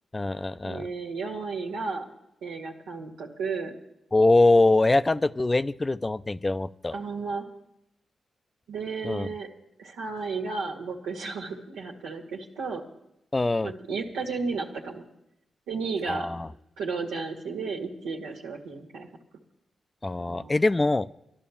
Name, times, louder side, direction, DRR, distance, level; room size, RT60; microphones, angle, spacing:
voice 1, 0.1-0.9 4.1-7.0 9.0-9.3 13.3-13.7 16.1-16.5 20.0-21.1, left 2 dB, 30° left, 14 dB, 0.5 m, -23 dB
voice 2, 0.6-2.1 2.4-3.7 6.9-7.5 8.7-9.5 9.8-12.8 13.6-15.0 15.7-16.3 16.8-19.1 20.2-20.6, right 4 dB, 90° right, 0 dB, 1.7 m, -33 dB
12.5 x 11.0 x 7.1 m, 0.83 s
supercardioid pair, 40°, 0 cm